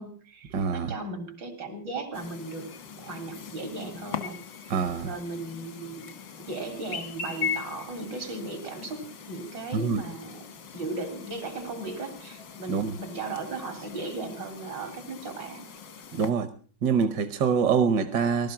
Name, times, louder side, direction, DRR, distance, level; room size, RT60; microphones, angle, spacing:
voice 1, 0.0-2.7 3.0-4.8 5.0-6.1 6.4-10.5 10.7-15.7, right 3 dB, 90° right, 6 dB, 4.0 m, -36 dB
voice 2, 0.5-0.9 4.7-5.1 9.7-10.0 12.7-13.0 16.1-16.5 16.8-18.5, right 6 dB, 70° right, 10 dB, 1.6 m, -25 dB
Chirp tweet, 2.1-16.3, left 7 dB, 80° left, 2.2 m, -40 dB
19.0 x 12.5 x 5.8 m, 0.42 s
omnidirectional pair, 1.9 m